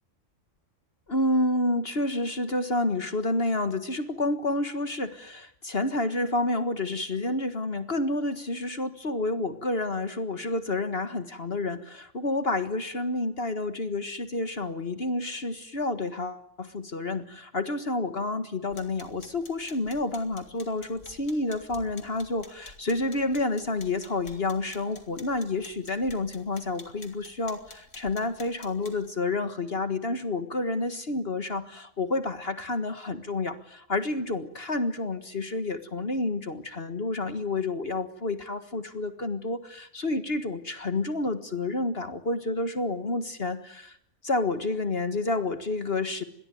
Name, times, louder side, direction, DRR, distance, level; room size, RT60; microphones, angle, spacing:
voice 1, 1.1-44.0 44.2-46.2, left 2 dB, 45° left, 10 dB, 1.8 m, -29 dB
sound 1, 18.7-29.1, left 3 dB, 90° left, 3.7 m, -51 dB
27.0 x 21.0 x 9.3 m, 0.71 s
omnidirectional pair, 1.4 m